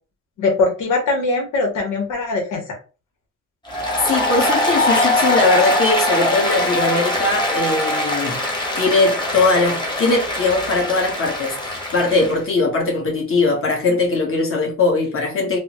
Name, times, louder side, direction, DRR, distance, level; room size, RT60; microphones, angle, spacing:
voice 1, 0.4-2.8, left 3 dB, 90° left, 1.0 m, -21 dB
Applause, 3.7-12.4, left 1 dB, 15° left, 1.1 m, -22 dB
voice 2, 4.1-8.4 8.8-15.6, left 3 dB, 45° left, 1.3 m, -20 dB
3.4 x 2.1 x 2.9 m
cardioid pair, 90°, 30 cm